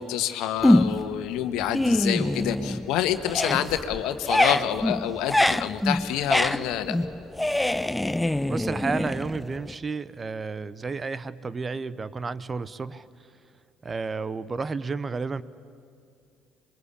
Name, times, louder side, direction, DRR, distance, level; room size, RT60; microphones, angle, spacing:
voice 1, 0.0-7.0, left 11 dB, 65° left, 9 dB, 1.5 m, -27 dB
sound 1, 0.6-1.2 1.6-2.9 3.2-9.7, left 1 dB, 10° left, 0.6 m, -24 dB
voice 2, 8.5-13.1 13.8-15.4, right 4 dB, 30° right, 17 dB, 0.9 m, -31 dB
27.0 x 23.0 x 8.6 m, 2.3 s
hypercardioid pair, 55°, 0 cm